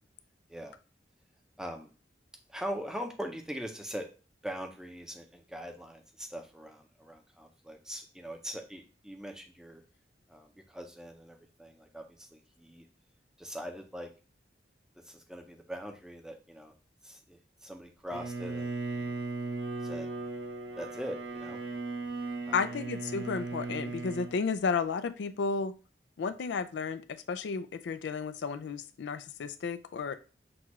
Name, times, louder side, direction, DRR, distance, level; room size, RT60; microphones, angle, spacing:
voice 1, 1.6-1.9 2.5-4.1 4.4-9.8 10.3-12.9 13.4-14.1 15.1-16.7 17.0-19.2 19.8-20.1 20.8-21.6 22.5-22.7, equal, 5° right, 3 dB, 0.6 m, -42 dB
Bowed string instrument, 18.1-24.4, right 3 dB, 85° right, 0.7 m, -37 dB
voice 2, 22.5-25.7 26.2-30.2, left 5 dB, 80° left, 11 dB, 0.4 m, -33 dB
6.1 x 2.4 x 3.0 m, 0.34 s
head